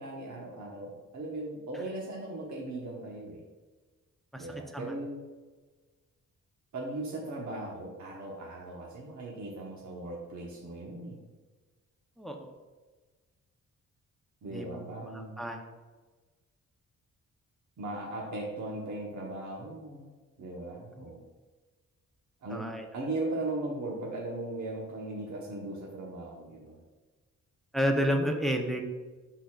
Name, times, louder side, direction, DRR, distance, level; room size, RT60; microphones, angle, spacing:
voice 1, 0.0-3.4 4.3-5.2 6.7-11.2 14.4-15.4 17.8-20.1 20.4-21.2 22.4-26.8, right 2 dB, 60° right, -3 dB, 1.1 m, -38 dB
voice 2, 12.2-12.5 14.5-15.7 21.0-21.1 22.5-22.8 27.7-28.8, equal, ahead, 3 dB, 0.7 m, -31 dB
10.5 x 4.0 x 2.4 m, 1.3 s
cardioid pair, 120°, 32 cm